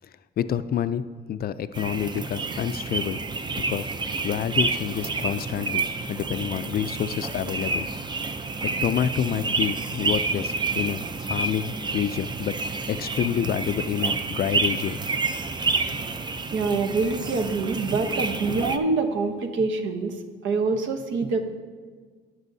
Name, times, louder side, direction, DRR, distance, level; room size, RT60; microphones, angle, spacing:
voice 1, 0.4-1.0 1.3-3.2 3.7-5.8 6.1-7.9 8.8-12.6 12.9-15.0, left 9 dB, 50° left, 13 dB, 0.4 m, -28 dB
sound 1, 1.7-18.8, right 3 dB, 20° right, 0.5 m, -29 dB
voice 2, 16.5-21.4, right 4 dB, 70° right, 6 dB, 1.0 m, -25 dB
17.0 x 6.2 x 2.7 m, 1.5 s
cardioid pair, 105°, 20 cm